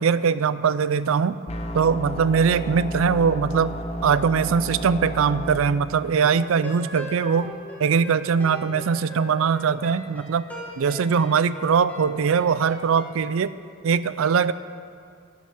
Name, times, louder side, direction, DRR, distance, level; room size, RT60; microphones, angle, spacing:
voice 1, 0.0-1.4 1.7-3.7 4.0-7.5 7.8-10.4 10.8-13.5 13.8-14.5, right 6 dB, 80° right, 16 dB, 0.4 m, -21 dB
sound 1, 1.5-5.6, equal, 30° left, 0.8 m, -32 dB
sound 2, 6.1-13.1, right 1 dB, 10° left, 1.9 m, -40 dB
11.5 x 7.5 x 6.4 m, 2.4 s
head